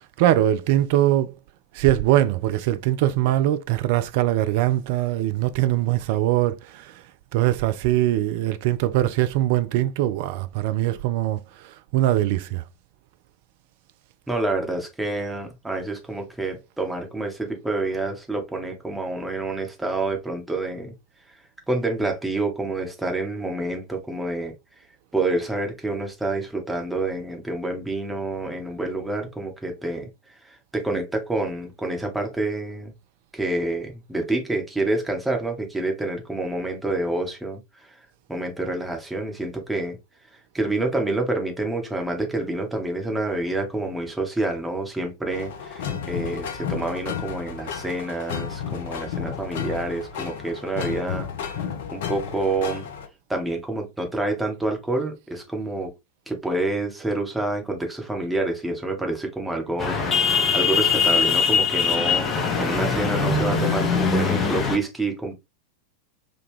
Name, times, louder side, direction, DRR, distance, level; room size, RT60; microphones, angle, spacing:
voice 1, 0.2-1.3 1.7-6.9 7.3-11.4 11.9-12.6, right 13 dB, 50° right, 0.3 m, -22 dB
voice 2, 14.3-20.9 21.7-24.5 25.1-30.1 30.7-32.9 33.3-37.6 38.3-40.0 40.5-51.3 51.9-52.8 53.3-55.9 56.3-65.3, right 2 dB, 5° right, 0.9 m, -28 dB
sound 1, 45.3-53.1, left 8 dB, 55° left, 0.5 m, -32 dB
sound 2, 59.8-64.8, left 5 dB, 25° left, 0.7 m, -22 dB
3.6 x 2.2 x 3.0 m
figure-of-eight pair, 90°, 0 cm